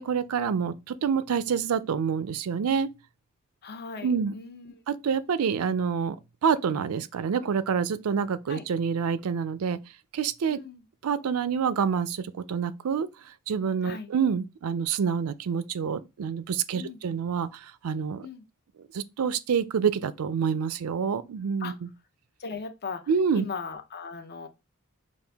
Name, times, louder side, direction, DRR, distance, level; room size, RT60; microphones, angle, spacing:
voice 1, 0.0-2.9 4.0-4.3 4.9-6.2 6.4-9.8 10.1-10.6 11.0-13.1 13.5-18.3 18.9-21.9 23.1-23.5, right 6 dB, 90° right, 0.4 m, -27 dB
voice 2, 3.6-4.7 8.5-8.6 10.5-10.8 13.8-14.1 16.7-17.0 18.2-18.4 21.6-21.7 22.4-24.5, left 5 dB, 50° left, 0.6 m, -38 dB
5.4 x 2.5 x 3.4 m
head